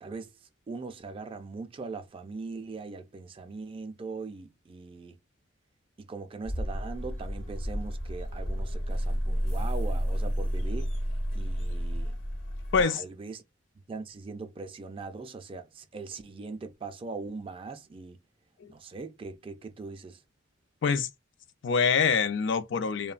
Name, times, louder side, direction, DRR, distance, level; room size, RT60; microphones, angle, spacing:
voice 1, 0.7-5.2 6.0-11.0 11.3-12.2 12.8-13.4 13.9-18.2 18.7-20.2, right 4 dB, 30° right, 0.3 m, -40 dB
sound 1, 6.4-12.8, equal, 80° left, 1.0 m, -31 dB
voice 2, 21.6-23.1, left 5 dB, 65° left, 0.4 m, -25 dB
3.0 x 2.1 x 2.3 m
head